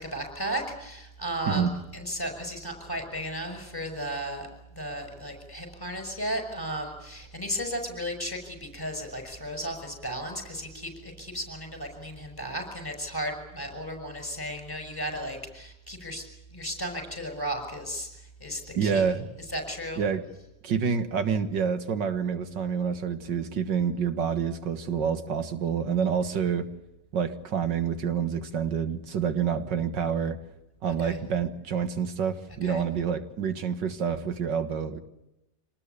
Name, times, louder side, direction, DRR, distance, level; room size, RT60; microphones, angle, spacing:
voice 1, 0.0-1.7 1.9-4.5 4.8-16.2 16.5-18.1 18.4-19.0 19.5-20.0 31.0-31.2 32.6-32.8, equal, 10° left, 5 dB, 6.3 m, -34 dB
voice 2, 18.8-19.3 20.0-20.2 20.6-26.7 27.1-30.4 30.8-35.0, right 7 dB, 85° right, 9 dB, 2.2 m, -28 dB
26.0 x 19.5 x 8.4 m, 0.90 s
omnidirectional pair, 1.9 m